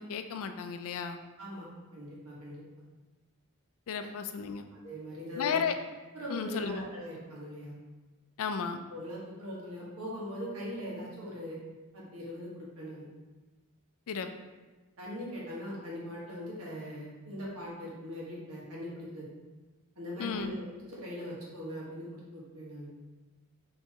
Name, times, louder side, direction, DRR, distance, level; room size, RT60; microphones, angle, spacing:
voice 1, 0.0-1.2 3.9-4.7 5.4-5.8 6.3-6.9 8.4-8.8 14.1-14.3 20.2-20.5, left 6 dB, 65° left, 8 dB, 0.4 m, -33 dB
voice 2, 1.4-2.6 4.7-5.6 6.1-7.7 8.9-11.6 11.9-13.1 15.0-19.2 19.9-22.9, equal, 70° right, -5 dB, 1.4 m, -41 dB
4.5 x 3.1 x 3.5 m, 1.2 s
head